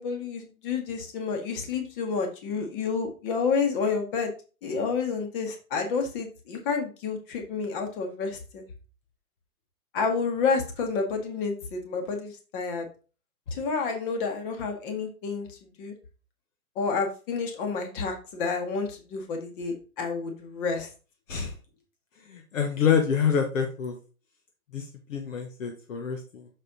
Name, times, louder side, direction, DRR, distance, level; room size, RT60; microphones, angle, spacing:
voice 1, 0.0-4.3 4.6-8.6 9.9-12.8 13.5-15.9 16.8-20.9, left 5 dB, 35° left, 4 dB, 1.8 m, -29 dB
voice 2, 22.3-24.0 24.7-26.5, left 7 dB, 60° left, 4 dB, 1.3 m, -27 dB
6.7 x 4.8 x 3.9 m, 0.34 s
hypercardioid pair, 145°, 45 cm